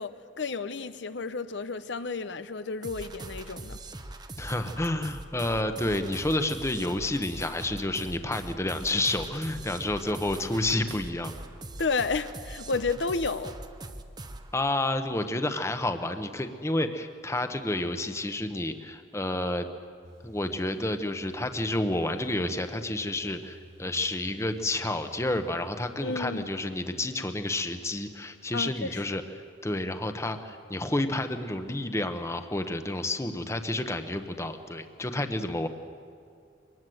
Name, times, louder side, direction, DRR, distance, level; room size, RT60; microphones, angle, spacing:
voice 1, 0.0-3.8 11.8-13.5 26.0-26.5 28.5-29.0, left 4 dB, 75° left, 0.8 m, -31 dB
sound 1, 2.8-14.5, right 2 dB, 20° right, 0.9 m, -42 dB
voice 2, 4.4-11.3 14.5-19.7 20.2-29.2 29.6-35.7, left 1 dB, 15° left, 1.0 m, -30 dB
sound 2, 20.0-25.7, right 2 dB, 85° right, 5.1 m, -52 dB
23.5 x 20.0 x 7.8 m
head